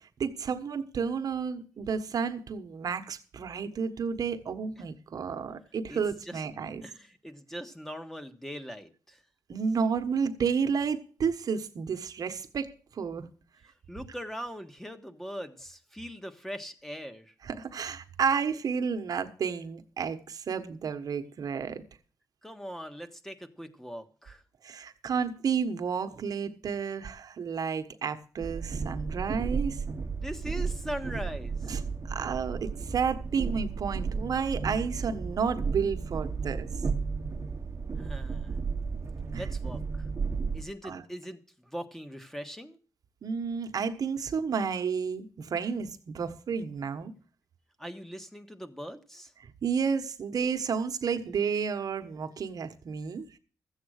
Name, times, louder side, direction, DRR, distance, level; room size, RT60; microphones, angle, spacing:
voice 1, 0.2-6.8 9.5-13.3 17.4-21.8 24.6-29.8 31.7-31.8 32.1-36.7 39.3-39.5 40.8-41.0 43.2-47.1 49.4-53.3, right 6 dB, 60° right, 1.3 m, -31 dB
voice 2, 5.9-6.4 6.8-9.2 13.9-17.3 22.4-24.4 30.1-31.8 38.0-38.6 39.4-40.1 40.5-42.8 47.8-49.3, equal, 5° left, 1.5 m, -41 dB
Train, 28.4-40.6, right 5 dB, 40° right, 1.1 m, -33 dB
14.0 x 8.2 x 6.5 m
cardioid pair, 100°, 7 cm